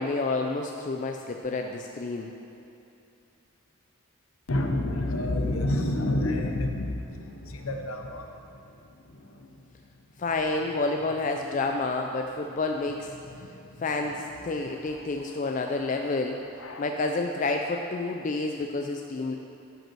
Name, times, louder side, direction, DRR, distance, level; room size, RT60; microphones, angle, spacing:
voice 1, 0.0-2.3 10.2-13.1 13.8-16.4 16.8-19.3, left 3 dB, 35° left, 3 dB, 0.3 m, -29 dB
voice 2, 4.5-9.7 13.1-14.1 14.4-15.9 16.5-16.8, left 1 dB, 70° left, 3 dB, 0.8 m, -31 dB
11.5 x 5.4 x 4.6 m, 2.7 s
head